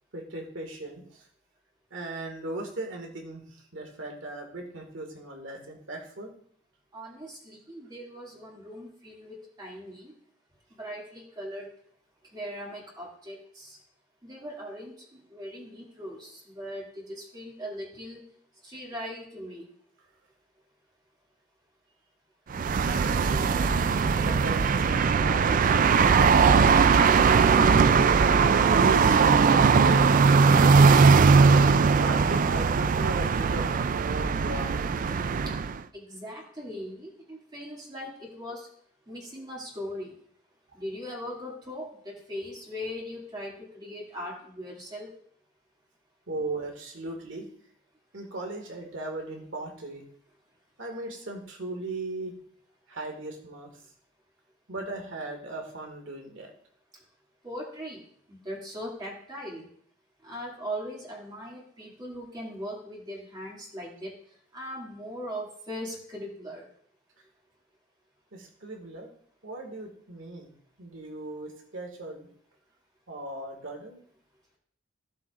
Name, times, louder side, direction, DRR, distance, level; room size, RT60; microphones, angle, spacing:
voice 1, 0.1-1.2 1.9-6.3 22.8-23.8 24.2-25.7 26.2-27.6 27.9-30.1 30.8-31.2 32.0-35.1 46.3-47.5 48.1-50.0 50.8-52.4 52.9-53.8 54.7-56.5 68.3-69.1 69.4-70.5 70.8-72.3 73.1-74.0, right 2 dB, 70° right, 3 dB, 2.0 m, -37 dB
voice 2, 6.9-10.1 10.8-11.7 12.3-13.8 14.2-18.2 18.6-19.7 35.5-35.6 35.9-38.7 39.1-40.1 40.7-45.1 57.4-58.0 58.3-59.7 60.2-64.1 64.5-66.7, equal, 20° right, -3 dB, 2.4 m, -39 dB
sound 1, 22.5-35.8, right 5 dB, 40° right, 0.3 m, -20 dB
14.5 x 7.7 x 2.5 m, 0.62 s
head